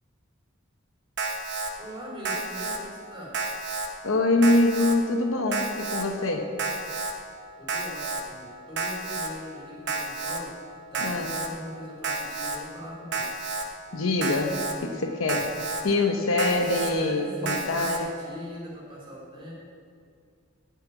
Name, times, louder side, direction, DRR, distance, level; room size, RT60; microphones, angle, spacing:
Alarm, 1.2-1.7 2.2-2.8 3.3-3.9 4.4-5.0 5.5-6.0 6.6-7.1 7.7-8.2 8.8-9.3 9.9-10.4 10.9-11.5 12.0-12.6 13.1-13.6 14.2-14.7 15.3-15.8 16.4-16.9 17.5-18.0, right 3 dB, 55° right, 1.0 m, -31 dB
voice 1, 1.8-3.3 7.6-10.5 10.9-13.2 16.9-19.5, equal, 25° right, -6 dB, 3.4 m, -41 dB
voice 2, 4.0-6.5 11.0-11.3 13.9-15.5 15.8-18.1, left 2 dB, 70° left, 4 dB, 0.9 m, -24 dB
8.8 x 6.9 x 8.4 m, 2.2 s
head